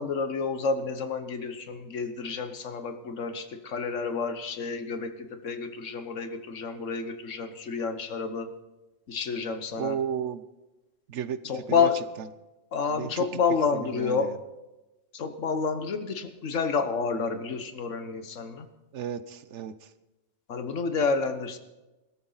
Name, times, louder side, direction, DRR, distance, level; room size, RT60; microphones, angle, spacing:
voice 1, 0.0-8.5 9.1-10.0 11.4-12.0 12.7-14.3 15.1-18.7 20.5-21.6, left 5 dB, 80° left, 9 dB, 1.5 m, -29 dB
voice 2, 9.8-10.4 11.1-12.3 12.9-13.3 13.7-14.4 18.9-19.9, right 8 dB, 70° right, 14 dB, 1.1 m, -34 dB
20.5 x 13.5 x 4.0 m, 1.0 s
omnidirectional pair, 1.3 m